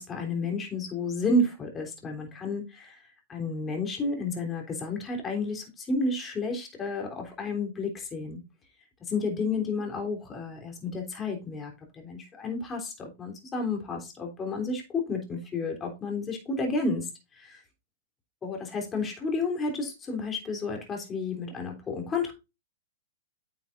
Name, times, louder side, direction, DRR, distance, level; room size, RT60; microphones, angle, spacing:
voice 1, 0.0-3.0 3.3-8.4 9.1-17.6 18.4-22.3, left 3 dB, 20° left, 3.3 m, -31 dB
9.4 x 7.2 x 2.5 m
hypercardioid pair, 115°, 0 cm